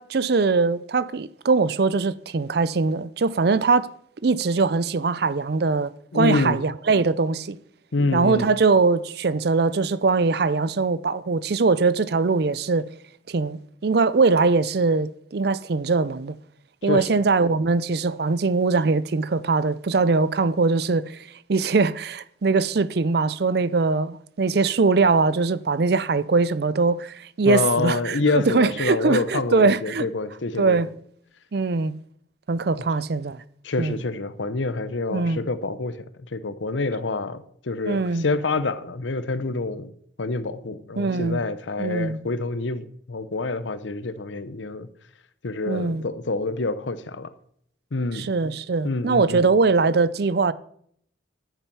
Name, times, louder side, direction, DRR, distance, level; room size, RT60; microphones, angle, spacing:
voice 1, 0.0-3.9 4.2-7.6 8.1-12.9 13.3-16.4 16.8-21.2 21.5-30.1 30.6-30.9 31.5-31.9 32.5-33.4 33.8-34.0 35.1-35.4 37.9-38.2 41.0-41.4 41.8-42.2 45.7-46.0 48.1-50.5, right 4 dB, 55° right, 0.5 m, -22 dB
voice 2, 6.1-6.6 7.9-8.5 16.8-17.1 27.4-30.9 33.6-36.0 36.3-39.9 40.2-44.9 45.4-47.3 47.9-48.3 48.8-49.5, left 3 dB, 80° left, 0.8 m, -27 dB
10.5 x 9.0 x 5.6 m
head